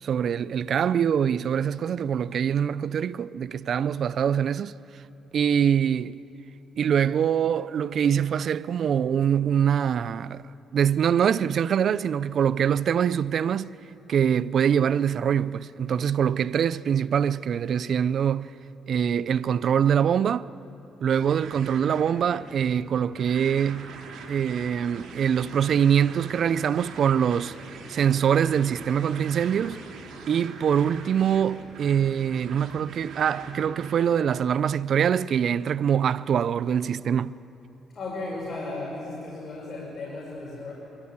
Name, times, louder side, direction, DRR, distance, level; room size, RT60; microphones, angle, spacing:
voice 1, 0.0-5.0 5.3-6.2 6.8-10.4 10.7-13.7 14.1-18.5 18.9-20.5 21.0-24.0 24.3-27.5 27.9-29.8 30.3-37.4, right 8 dB, 60° right, 0.4 m, -24 dB
sound 1, 21.1-34.0, right 4 dB, 75° right, 2.6 m, -43 dB
voice 2, 37.9-40.7, left 2 dB, 40° left, 5.0 m, -35 dB
23.0 x 14.5 x 8.6 m
cardioid pair, 90°, 0 cm